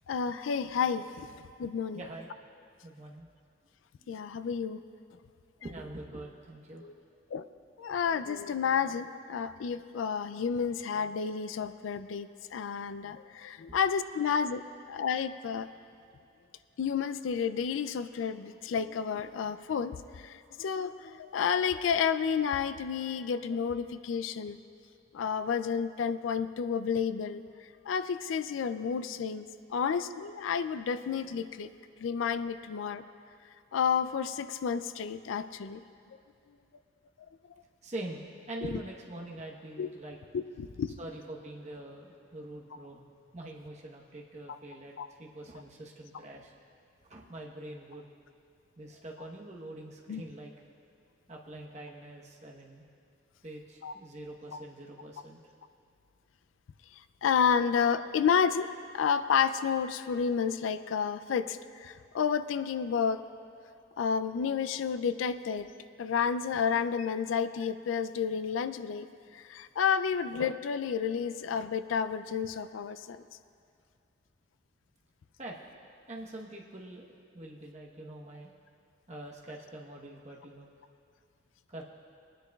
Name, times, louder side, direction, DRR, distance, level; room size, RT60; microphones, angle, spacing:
voice 1, 0.1-1.3 1.6-2.0 4.1-4.8 6.8-6.9 7.3-7.5 7.8-14.6 14.9-15.7 16.8-24.6 25.1-27.4 27.9-31.7 32.0-33.0 33.7-35.8 38.6-38.8 39.8-39.9 40.3-40.9 45.0-45.1 50.1-50.2 53.8-53.9 57.2-63.2 64.0-65.7 66.0-69.1 69.3-73.2, left 6 dB, 90° left, 13 dB, 0.4 m, -30 dB
voice 2, 1.9-2.3 2.8-3.3 4.0-4.1 5.6-6.9 37.8-40.2 41.0-43.1 43.3-46.5 47.0-48.1 48.8-50.5 51.3-52.8 53.4-55.4 75.4-75.6 76.1-77.0 77.3-78.5 79.1-80.7 81.7-81.8, right 1 dB, 35° right, -1 dB, 1.0 m, -44 dB
22.0 x 10.0 x 2.3 m, 2.4 s
head